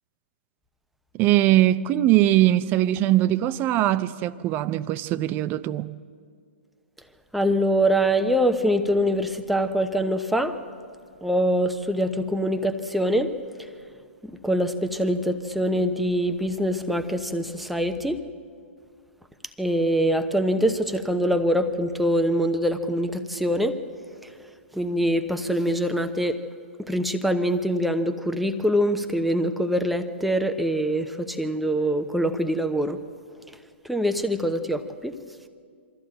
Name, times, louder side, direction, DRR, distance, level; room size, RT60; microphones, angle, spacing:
voice 1, 1.1-5.9, right 14 dB, 30° right, 0.6 m, -21 dB
voice 2, 7.3-10.6 11.2-13.3 14.4-18.2 19.6-23.8 24.2-24.3 24.7-26.4 26.8-33.0 33.8-35.1, equal, ahead, 0.9 m, -24 dB
23.5 x 14.0 x 7.8 m
figure-of-eight pair, 120°, 7 cm